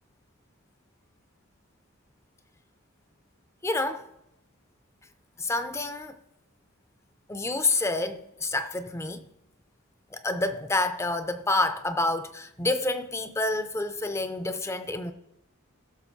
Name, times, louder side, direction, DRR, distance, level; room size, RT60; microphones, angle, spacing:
voice 1, 3.6-4.0 5.4-6.1 7.3-9.3 10.1-15.1, left 2 dB, 15° left, 0.5 m, -28 dB
16.5 x 6.5 x 2.7 m
head